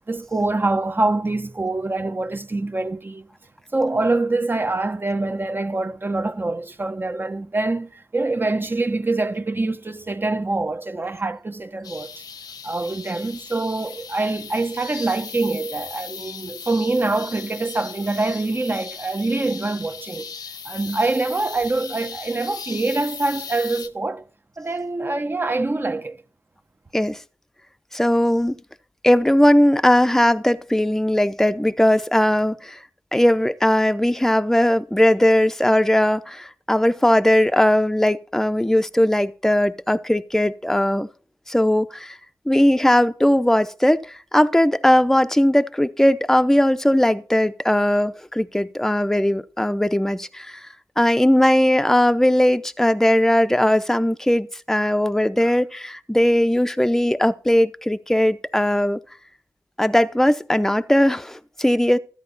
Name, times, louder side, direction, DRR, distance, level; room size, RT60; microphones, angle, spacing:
voice 1, 0.0-3.3 3.7-12.2 12.6-20.3 20.6-24.2 24.6-26.2, right 2 dB, 30° right, 1.1 m, -25 dB
sound 1, 11.8-23.9, left 6 dB, 90° left, 1.1 m, -37 dB
voice 2, 27.9-28.6 29.0-32.8 33.1-41.1 41.5-42.2 42.5-50.7 51.0-59.0 59.8-62.0, left 1 dB, 5° left, 0.7 m, -19 dB
13.0 x 8.7 x 4.1 m
cardioid pair, 60°, 6 cm